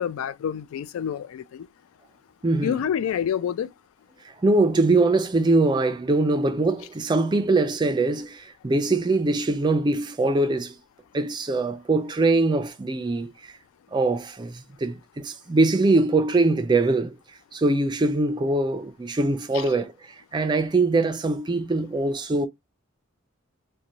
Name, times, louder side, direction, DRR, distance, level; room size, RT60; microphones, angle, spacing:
voice 1, 0.0-1.7 2.6-3.7 19.5-19.6, left 8 dB, 90° left, 0.3 m, -28 dB
voice 2, 2.4-2.7 4.2-10.8 11.1-13.6 13.9-17.2 17.5-22.5, right 2 dB, 20° right, 0.3 m, -22 dB
2.5 x 2.2 x 2.9 m
head